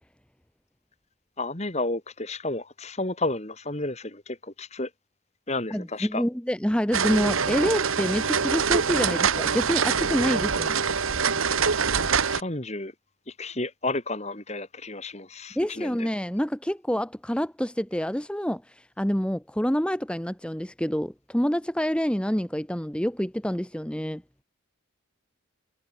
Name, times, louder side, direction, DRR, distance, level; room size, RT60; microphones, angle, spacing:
voice 1, 1.4-4.9 5.5-6.2 12.3-12.9 13.3-16.1, left 2 dB, 30° left, 2.4 m, -32 dB
voice 2, 5.7-10.8 15.5-24.2, equal, 5° left, 1.0 m, -27 dB
sound 1, 6.9-12.4, right 6 dB, 80° right, 1.4 m, -24 dB
head